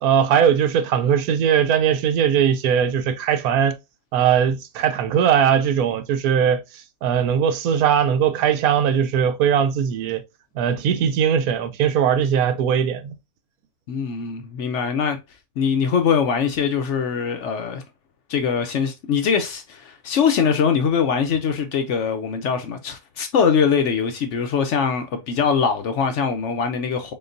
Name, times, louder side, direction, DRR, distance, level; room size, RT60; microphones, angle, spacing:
voice 1, 0.0-3.8 4.1-6.6 7.0-10.2 10.6-13.1, right 8 dB, 80° right, 1.1 m, -19 dB
voice 2, 13.9-15.2 15.6-17.8 18.3-27.1, left 6 dB, 65° left, 0.8 m, -22 dB
3.9 x 3.7 x 2.5 m
omnidirectional pair, 1.6 m